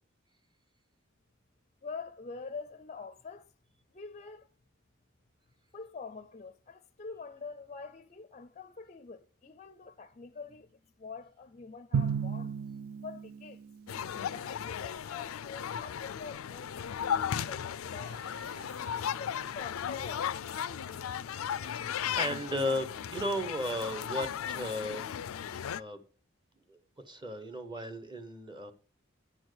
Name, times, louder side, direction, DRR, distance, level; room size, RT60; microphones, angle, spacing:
voice 1, 1.8-3.5 3.9-4.5 5.7-12.6 13.0-13.6 14.3-18.2 19.2-20.4, left 4 dB, 30° left, 0.5 m, -45 dB
Drum, 11.9-14.1, right 6 dB, 80° right, 0.3 m, -34 dB
sound 1, 13.9-25.8, left 9 dB, 90° left, 0.4 m, -36 dB
sound 2, 18.0-23.5, right 2 dB, 55° right, 1.3 m, -56 dB
voice 2, 21.5-25.0 25.4-26.0 26.7-26.8 27.0-28.7, left 1 dB, 20° right, 0.9 m, -35 dB
9.8 x 4.4 x 6.4 m
head